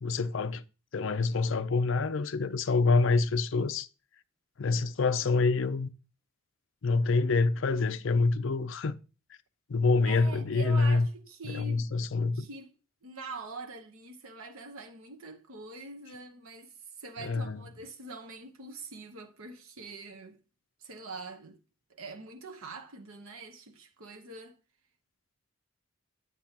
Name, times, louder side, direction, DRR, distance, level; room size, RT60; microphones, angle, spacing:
voice 1, 0.0-0.6 0.9-3.9 4.6-5.9 6.8-9.0 9.7-11.1 11.5-12.5 17.2-17.6, left 3 dB, 65° left, 0.5 m, -26 dB
voice 2, 10.0-11.9 12.3-12.7 13.0-20.4 20.8-21.6 21.9-24.6, right 3 dB, 85° right, 1.0 m, -44 dB
9.4 x 8.3 x 2.9 m
head